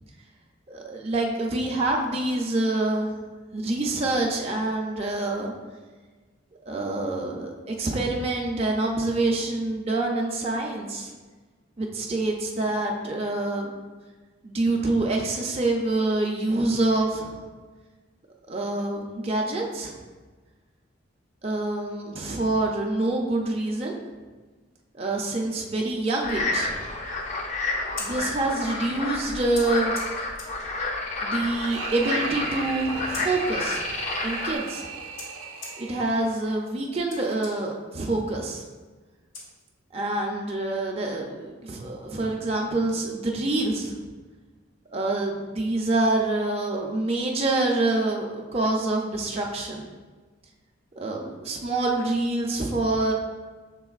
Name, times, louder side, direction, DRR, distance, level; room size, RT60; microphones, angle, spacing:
voice 1, 0.7-3.1 3.5-5.5 6.7-11.1 11.8-13.7 14.4-17.4 18.5-19.9 21.4-24.0 24.9-26.7 28.0-30.0 31.2-33.9 34.2-34.9 35.8-38.6 39.9-44.0 44.9-49.9 51.0-53.1, right 2 dB, 30° right, 0 dB, 0.5 m, -26 dB
sound 1, 26.2-34.6, left 2 dB, 35° left, 0.5 m, -30 dB
Scissors, 27.7-40.1, left 3 dB, 85° left, 1.1 m, -46 dB
sound 2, 31.4-36.5, right 6 dB, 85° right, 0.4 m, -37 dB
6.0 x 3.7 x 2.4 m, 1.3 s
head